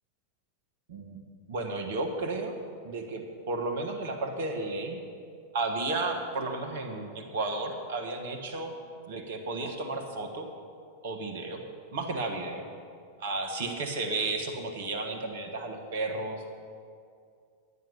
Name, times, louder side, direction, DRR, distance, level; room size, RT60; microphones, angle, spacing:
voice 1, 0.9-1.2 1.5-5.0 5.5-8.7 9.1-10.5 11.0-11.6 11.9-12.7 13.2-16.5, right 2 dB, 55° right, 5 dB, 1.4 m, -33 dB
11.0 x 9.3 x 5.6 m, 2.3 s
figure-of-eight pair, 90°, 0 cm